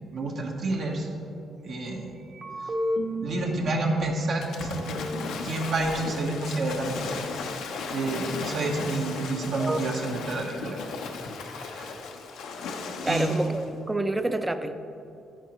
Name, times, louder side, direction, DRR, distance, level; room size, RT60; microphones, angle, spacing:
voice 1, 0.1-1.1 1.6-2.1 3.2-5.0 5.4-6.9 7.9-10.8 11.7-11.9 13.0-13.3, right 2 dB, 65° right, -1 dB, 1.2 m, -29 dB
sound 1, 2.2-3.5 4.1-4.2 4.4-5.7, equal, 45° right, 1.2 m, -32 dB
Waves surf / Splash splatter, 4.4-13.7, left 4 dB, 85° left, 0.8 m, -36 dB
voice 2, 13.0-14.7, right 2 dB, 15° right, 9 dB, 0.5 m, -28 dB
11.0 x 9.5 x 3.1 m, 2.7 s
cardioid pair, 90°, 0 cm